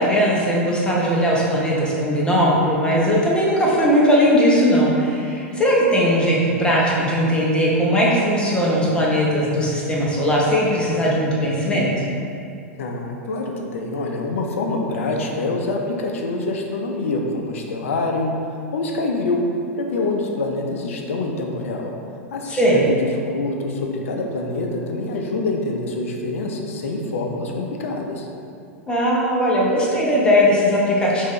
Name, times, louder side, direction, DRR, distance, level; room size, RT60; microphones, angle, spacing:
voice 1, 0.0-11.9 22.6-22.8 28.9-31.2, equal, 10° left, -5 dB, 0.9 m, -18 dB
voice 2, 12.8-18.4 18.7-19.5 19.8-21.9 22.3-28.3, left 2 dB, 65° left, 2 dB, 0.5 m, -25 dB
5.0 x 2.6 x 3.2 m, 2.4 s
figure-of-eight pair, 95°, 8 cm